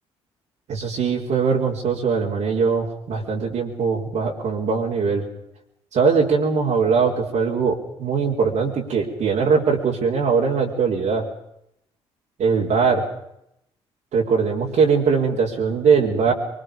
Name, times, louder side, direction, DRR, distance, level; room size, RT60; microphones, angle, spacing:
voice 1, 0.7-5.2 5.9-11.3 12.4-13.0 14.1-16.3, right 5 dB, 60° right, -2 dB, 4.7 m, -21 dB
24.5 x 23.5 x 5.3 m, 0.79 s
hypercardioid pair, 50°, 13 cm